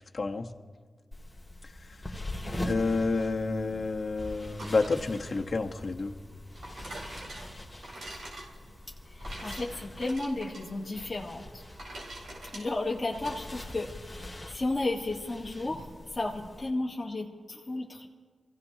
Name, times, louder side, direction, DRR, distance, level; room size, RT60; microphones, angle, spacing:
voice 1, 0.1-0.5 1.6-2.1 2.6-6.1, left 3 dB, 45° left, 2 dB, 1.2 m, -30 dB
sound 1, 1.1-16.7, left 1 dB, 10° left, 2.3 m, -43 dB
sound 2, 4.4-13.4, right 1 dB, 75° right, 4.5 m, -46 dB
voice 2, 9.1-11.6 12.5-18.1, left 2 dB, 25° left, -3 dB, 1.6 m, -33 dB
27.5 x 16.0 x 2.9 m, 1.5 s
wide cardioid pair, 85°, 0 cm